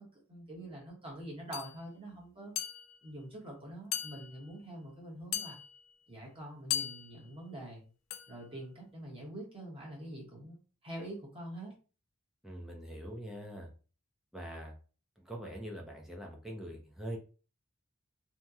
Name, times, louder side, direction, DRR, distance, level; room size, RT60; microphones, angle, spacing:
voice 1, 0.0-2.5 3.0-5.6 6.1-7.8 8.3-11.7, right 1 dB, 25° right, -3 dB, 0.9 m, -45 dB
Metal clink sound, 1.5-1.7 2.6-3.1 3.9-4.6 5.3-6.0 6.7-7.3 8.1-8.5, left 11 dB, 65° left, 0.4 m, -38 dB
voice 2, 12.4-13.7 14.3-14.7 15.2-17.2, right 1 dB, ahead, -1 dB, 0.5 m, -43 dB
2.8 x 2.1 x 3.5 m, 0.36 s
head